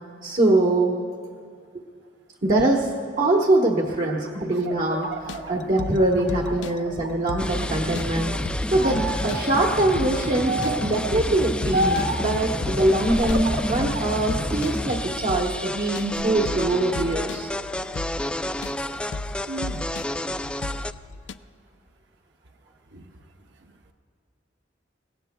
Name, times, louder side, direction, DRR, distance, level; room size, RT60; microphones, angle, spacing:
voice 1, 0.2-1.0 2.4-8.4 8.7-17.5, right 2 dB, 45° right, -1 dB, 1.2 m, -23 dB
sound 1, 3.9-7.1 7.5-8.4 8.8-9.4 10.4-11.0 11.7-12.3 13.0-14.1 14.5-15.5 16.0-16.7, right 1 dB, 80° right, 1.4 m, -31 dB
sound 2, 5.1-21.3, left 3 dB, 70° left, 0.5 m, -36 dB
sound 3, 7.4-20.9, left 1 dB, 5° left, 0.3 m, -30 dB
voice 2, 19.5-19.9 22.9-23.2 23.6-23.7, right 3 dB, 65° right, 5 dB, 0.9 m, -37 dB
29.0 x 17.5 x 2.3 m, 2.2 s
head